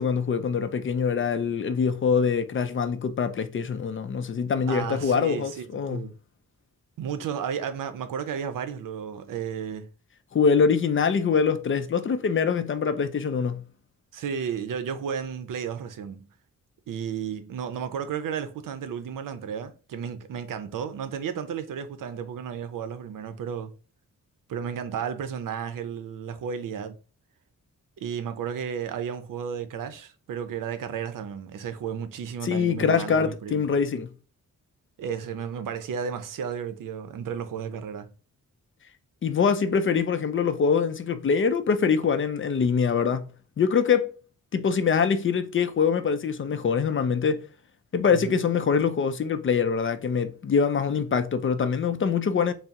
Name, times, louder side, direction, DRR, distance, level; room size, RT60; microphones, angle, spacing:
voice 1, 0.0-6.0 10.3-13.6 32.4-34.1 39.2-43.2 43.6-44.1 44.5-47.4 47.9-52.5, left 6 dB, 40° left, 0.4 m, -24 dB
voice 2, 4.7-6.1 7.0-9.9 14.1-16.3 16.9-23.7 24.5-27.0 28.0-33.6 35.0-38.1 48.1-48.4, right 7 dB, 75° right, 0.6 m, -33 dB
4.3 x 2.0 x 3.6 m
wide cardioid pair, 130°, 32 cm